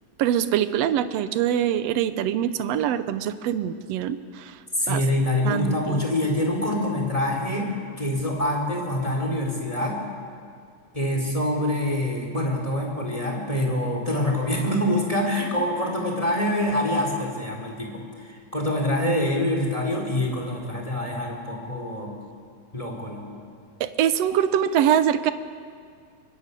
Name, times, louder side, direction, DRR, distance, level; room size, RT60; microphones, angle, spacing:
voice 1, 0.2-4.6 4.9-5.0 5.4-6.0 23.8-25.3, right 10 dB, 80° right, 12 dB, 1.5 m, -24 dB
voice 2, 4.8-10.0 10.9-22.1 22.7-23.4, left 1 dB, 10° left, 0 dB, 4.0 m, -25 dB
24.0 x 22.5 x 8.4 m, 2.2 s
omnidirectional pair, 3.9 m